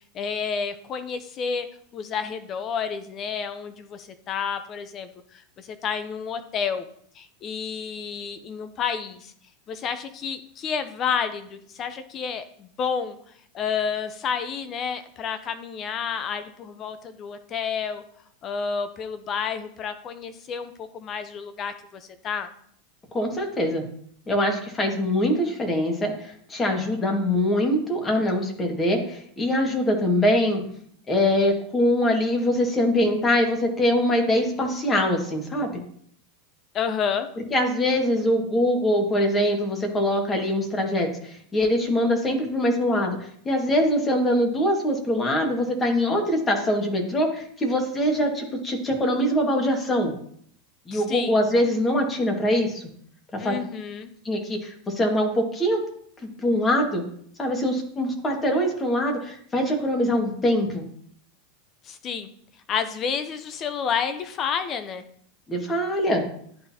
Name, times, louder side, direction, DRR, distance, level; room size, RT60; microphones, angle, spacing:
voice 1, 0.1-1.7 1.9-6.9 7.1-9.3 9.7-13.2 13.5-18.0 18.4-22.5 36.7-37.3 50.9-51.4 53.4-54.1 61.8-62.3 62.7-65.0, left 6 dB, 40° left, 10 dB, 0.6 m, -30 dB
voice 2, 23.1-23.8 24.3-30.6 31.1-35.7 37.5-50.1 50.9-52.8 53.3-53.5 54.3-55.8 56.2-57.0 57.4-60.8 65.5-66.3, left 1 dB, 20° left, 2 dB, 1.9 m, -23 dB
11.0 x 3.9 x 2.9 m, 0.63 s
hypercardioid pair, 100°, 0 cm